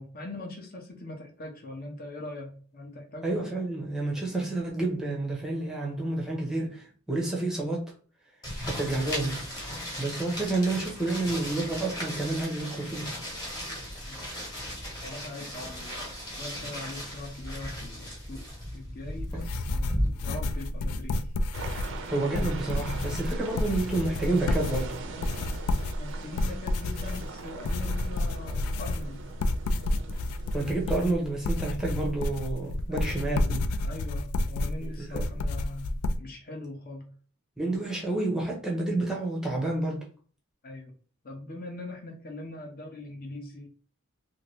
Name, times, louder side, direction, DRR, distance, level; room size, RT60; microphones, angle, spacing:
voice 1, 0.0-3.3 14.0-14.2 15.0-21.3 26.0-29.3 32.9-33.6 33.8-35.9 36.2-37.1 40.6-40.9 41.2-43.7, left 2 dB, 40° left, 0.8 m, -41 dB
voice 2, 3.2-7.8 8.6-9.4 9.7-13.1 19.3-19.4 22.1-25.0 30.5-33.6 35.0-35.2 37.6-40.0, right 2 dB, 5° right, 0.7 m, -29 dB
sound 1, 8.4-20.1, equal, 15° left, 1.3 m, -36 dB
sound 2, 19.2-36.2, left 2 dB, 90° left, 0.3 m, -30 dB
sound 3, 21.5-31.0, right 3 dB, 55° right, 0.5 m, -42 dB
2.8 x 2.7 x 3.0 m
head